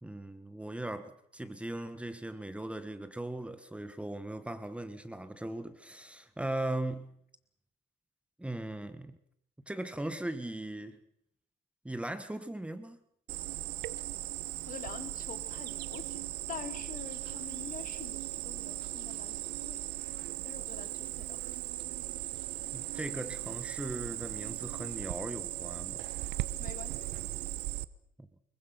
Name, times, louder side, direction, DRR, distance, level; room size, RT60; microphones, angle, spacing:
voice 1, 0.0-7.1 8.4-9.2 9.7-11.0 11.8-13.0 22.7-26.0 28.2-28.3, right 1 dB, 5° right, 11 dB, 1.5 m, -39 dB
Cricket, 13.3-27.8, right 16 dB, 85° right, 1.0 m, -38 dB
voice 2, 14.7-19.8 20.3-21.8 26.6-27.1, left 8 dB, 55° left, 9 dB, 2.9 m, -46 dB
25.0 x 22.5 x 5.9 m, 0.69 s
cardioid pair, 110°, 17 cm